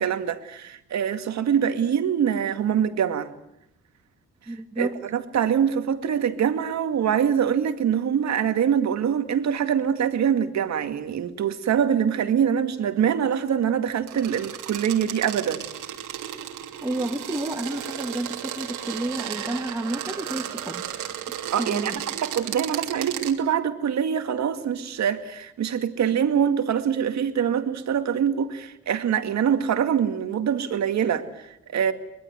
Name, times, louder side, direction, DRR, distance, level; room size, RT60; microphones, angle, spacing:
voice 1, 0.0-3.3 4.5-15.7 21.5-31.9, right 8 dB, 65° right, 2.3 m, -24 dB
voice 2, 4.5-5.0 16.8-20.9 21.6-22.0, right 1 dB, 10° right, 2.2 m, -30 dB
sound 1, 14.1-23.3, right 10 dB, 90° right, 3.0 m, -34 dB
24.0 x 21.0 x 9.3 m
cardioid pair, 90°, 30 cm